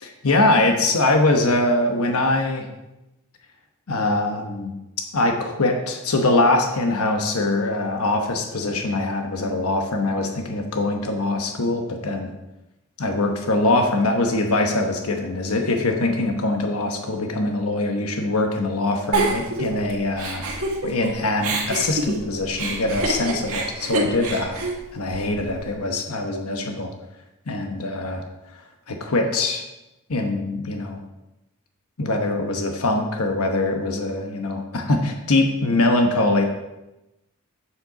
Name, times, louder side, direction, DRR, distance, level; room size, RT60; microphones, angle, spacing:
voice 1, 0.2-2.7 3.9-4.7 5.1-12.3 13.0-20.4 20.8-24.5 24.9-26.9 27.5-28.2 28.5-28.6 28.9-29.6 30.1-31.0 32.0-36.4, left 2 dB, 75° left, 3 dB, 1.0 m, -22 dB
Giggle, 19.1-21.1 21.4-25.6, right 2 dB, 70° right, 1.9 m, -27 dB
7.8 x 6.6 x 4.8 m, 0.96 s
head